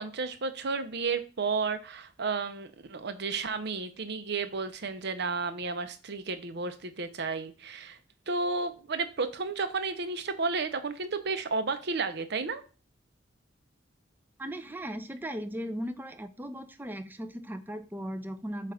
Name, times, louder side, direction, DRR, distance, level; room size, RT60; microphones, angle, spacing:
voice 1, 0.0-8.0 8.3-12.6, right 4 dB, 60° right, 10 dB, 0.7 m, -32 dB
voice 2, 14.4-18.7, equal, 10° right, 9 dB, 0.5 m, -37 dB
7.5 x 2.5 x 5.7 m, 0.35 s
head